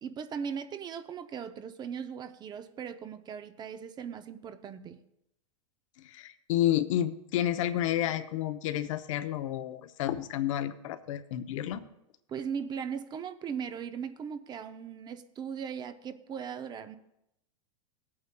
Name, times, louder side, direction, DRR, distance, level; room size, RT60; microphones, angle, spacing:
voice 1, 0.0-5.0 12.3-17.0, right 7 dB, 25° right, 10 dB, 0.5 m, -38 dB
voice 2, 6.0-11.8, left 12 dB, 70° left, 10 dB, 0.7 m, -30 dB
17.5 x 8.6 x 2.2 m, 0.82 s
hypercardioid pair, 125°, 17 cm